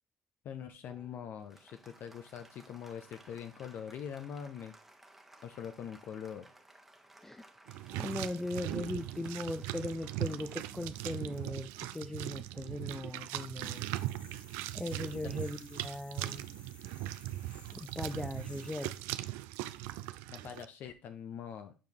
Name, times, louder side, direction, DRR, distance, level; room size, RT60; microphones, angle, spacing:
voice 1, 0.4-4.8 5.4-6.5 20.3-21.7, left 8 dB, 55° left, 8 dB, 0.6 m, -43 dB
Applause, 0.9-12.7, right 1 dB, 5° right, 1.1 m, -60 dB
sound 1, 7.7-20.7, right 16 dB, 75° right, 0.4 m, -40 dB
voice 2, 7.9-13.9 14.7-16.5 17.7-18.9, left 2 dB, 10° left, 9 dB, 0.4 m, -39 dB
sound 2, 13.6-19.0, left 3 dB, 35° left, 1.8 m, -57 dB
7.5 x 4.5 x 3.5 m, 0.33 s
hypercardioid pair, 65°, 4 cm